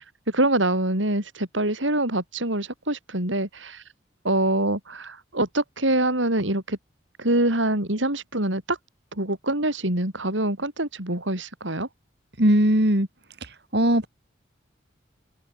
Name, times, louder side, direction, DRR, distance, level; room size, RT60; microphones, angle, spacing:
voice 1, 0.3-3.8 4.2-6.8 7.2-8.8 9.1-11.9, right 1 dB, 80° right, 6.1 m, -25 dB
voice 2, 12.4-13.1 13.7-14.1, equal, 60° right, 5.2 m, -19 dB
open air
head